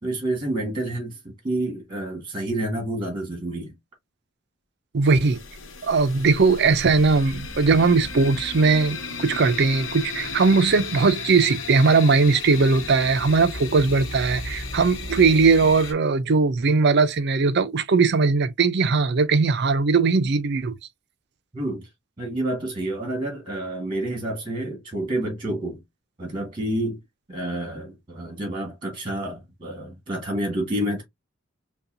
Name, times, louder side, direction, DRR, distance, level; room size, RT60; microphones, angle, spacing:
voice 1, 0.0-3.7 21.5-21.9 22.2-25.8 26.2-27.0 27.3-31.0, right 1 dB, 25° right, 1.6 m, -29 dB
voice 2, 4.9-5.4 5.8-20.7, right 4 dB, 55° right, 0.5 m, -19 dB
sound 1, 5.0-15.9, left 4 dB, 80° left, 1.0 m, -34 dB
5.4 x 2.3 x 2.6 m
head